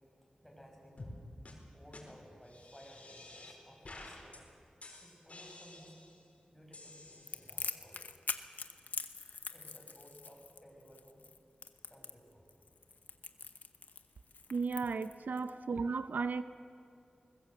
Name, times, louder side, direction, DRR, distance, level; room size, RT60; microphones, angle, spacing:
voice 1, 0.4-1.3 1.7-4.4 5.0-6.0 6.5-8.0 9.5-11.2 11.9-12.5 15.3-15.6, equal, 5° left, -1 dB, 7.0 m, -57 dB
sound 1, 1.0-1.2 1.5-1.6 1.9-2.0 2.5-3.6 3.8-4.4 4.8-6.2 6.7-7.7, left 2 dB, 55° left, 4.5 m, -51 dB
Crackle, 7.3-15.5, left 4 dB, 85° left, 0.9 m, -43 dB
voice 2, 14.5-16.4, right 4 dB, 85° right, 11 dB, 0.6 m, -35 dB
21.5 x 20.0 x 8.0 m, 2.4 s
wide cardioid pair, 60°, 3 cm